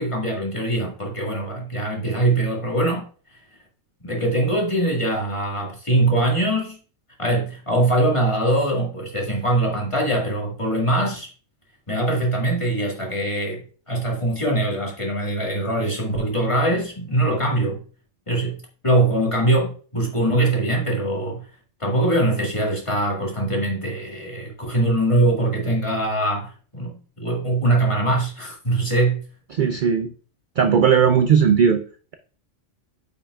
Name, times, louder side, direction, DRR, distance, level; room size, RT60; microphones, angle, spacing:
voice 1, 0.0-3.0 4.0-6.8 7.2-11.3 11.9-17.8 18.3-18.6 18.8-21.5 21.8-29.2, right 1 dB, 25° left, -2 dB, 2.0 m, -22 dB
voice 2, 29.5-30.1 30.6-31.8, right 7 dB, 55° right, 8 dB, 0.6 m, -17 dB
9.2 x 5.6 x 2.4 m, 0.39 s
omnidirectional pair, 1.3 m